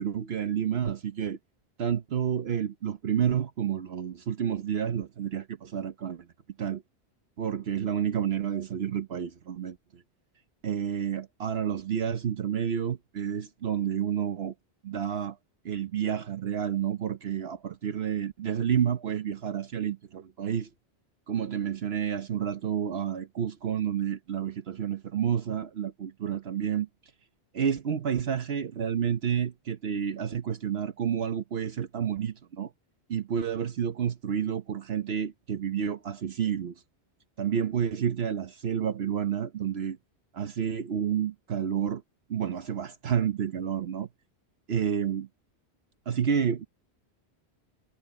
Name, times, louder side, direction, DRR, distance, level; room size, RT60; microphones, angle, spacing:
voice 1, 0.0-1.4 1.8-6.3 6.6-6.8 7.4-10.0 10.6-14.5 14.8-15.4 15.6-20.7 21.3-26.9 27.5-32.7 33.1-36.8 37.4-40.0 40.3-42.0 42.3-44.1 44.7-45.3 46.1-46.7, right 8 dB, 70° right, 1.1 m, -30 dB
omnidirectional pair, 1.1 m